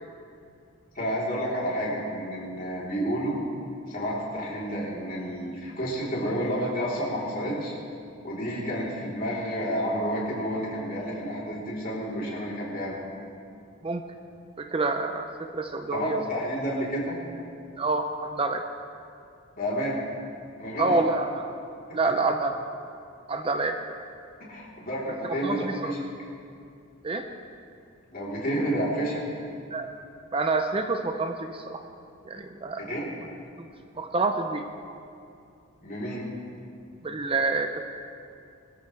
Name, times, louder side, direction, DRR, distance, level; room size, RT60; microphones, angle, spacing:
voice 1, 1.0-3.4 3.9-7.7 8.2-13.0 15.9-17.2 19.6-20.0 20.6-21.0 24.5-26.0 28.1-29.2 32.9-33.1 35.8-36.3, equal, 40° left, -6 dB, 3.6 m, -30 dB
voice 2, 14.6-16.2 17.8-18.6 20.8-21.3 21.9-22.6 23.3-24.0 25.2-25.9 27.0-27.3 29.7-29.9 30.3-31.8 32.2-32.8 33.6-33.7 34.0-34.6 37.0-37.8, right 3 dB, 25° right, 6 dB, 0.6 m, -27 dB
22.5 x 13.5 x 3.4 m, 2.4 s
head